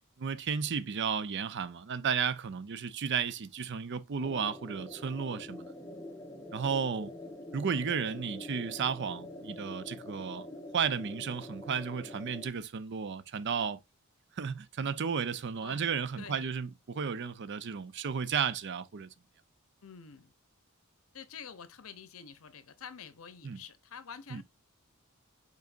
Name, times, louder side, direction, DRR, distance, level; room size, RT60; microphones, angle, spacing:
voice 1, 0.2-5.7 6.5-7.1 7.5-10.5 10.7-13.8 14.4-19.1 23.4-23.6 24.3-24.4, right 6 dB, 55° right, 0.5 m, -33 dB
sound 1, 4.2-12.5, left 1 dB, 15° left, 0.9 m, -45 dB
voice 2, 16.2-16.5 19.8-20.3 21.1-24.4, left 7 dB, 70° left, 0.7 m, -48 dB
5.0 x 4.1 x 2.5 m
head